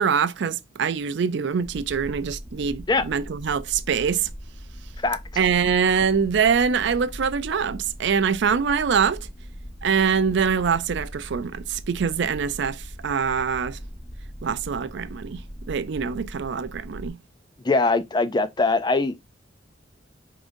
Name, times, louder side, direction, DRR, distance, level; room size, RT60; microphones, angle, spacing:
voice 1, 0.0-4.3 5.4-9.3 9.8-13.8 14.4-17.2, right 6 dB, 65° right, 0.4 m, -24 dB
sound 1, 1.6-17.1, equal, 45° left, 2.2 m, -40 dB
voice 2, 17.6-19.2, left 3 dB, 25° left, 0.4 m, -22 dB
5.2 x 3.7 x 2.6 m
head